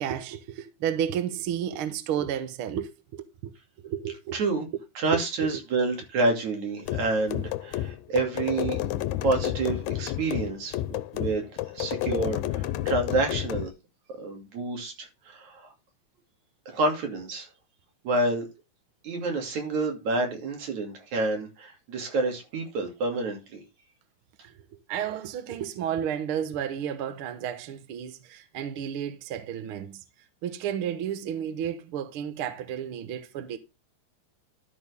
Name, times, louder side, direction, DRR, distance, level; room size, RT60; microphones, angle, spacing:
voice 1, 0.0-3.5 3.8-4.4 5.1-5.2 24.4-24.5 24.9-30.0 30.4-33.6, right 9 dB, 60° right, 1.6 m, -32 dB
voice 2, 4.3-4.7 5.0-8.8 9.2-13.7 14.2-15.7 16.7-17.5 18.0-18.5 19.0-23.6, right 2 dB, 75° right, 4.0 m, -28 dB
sound 1, 6.9-13.7, left 14 dB, 80° left, 2.0 m, -31 dB
12.5 x 6.3 x 3.5 m
omnidirectional pair, 3.3 m